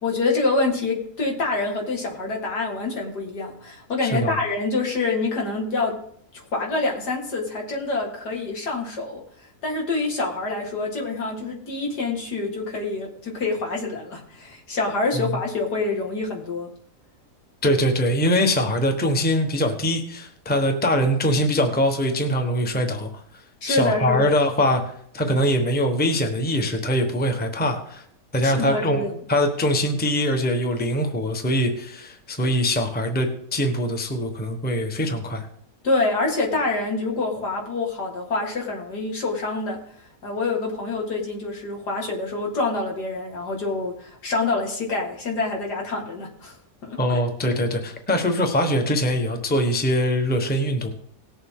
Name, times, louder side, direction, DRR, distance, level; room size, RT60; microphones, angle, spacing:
voice 1, 0.0-6.0 6.3-9.2 9.6-16.7 23.6-24.3 28.4-29.1 35.8-39.8 40.2-46.6 46.8-47.2, left 3 dB, 75° left, 0 dB, 2.7 m, -26 dB
voice 2, 4.0-4.4 15.1-15.2 17.6-23.2 23.7-24.8 25.1-28.0 28.3-35.5 47.0-50.9, equal, 5° left, 4 dB, 1.0 m, -22 dB
18.5 x 7.1 x 3.7 m, 0.67 s
omnidirectional pair, 1.7 m